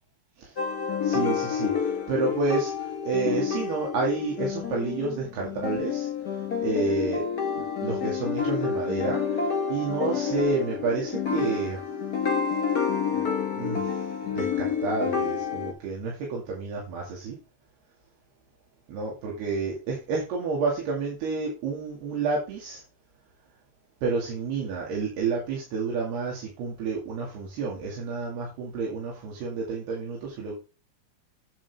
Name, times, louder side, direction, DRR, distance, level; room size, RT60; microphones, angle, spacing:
sound 1, 0.6-15.7, left 7 dB, 35° left, 2.0 m, -29 dB
voice 1, 1.0-7.2 7.6-11.8 13.1-13.3 13.6-17.4 18.9-22.8 24.0-30.5, right 4 dB, 85° right, -2 dB, 4.6 m, -30 dB
9.4 x 8.9 x 3.6 m, 0.31 s
omnidirectional pair, 4.4 m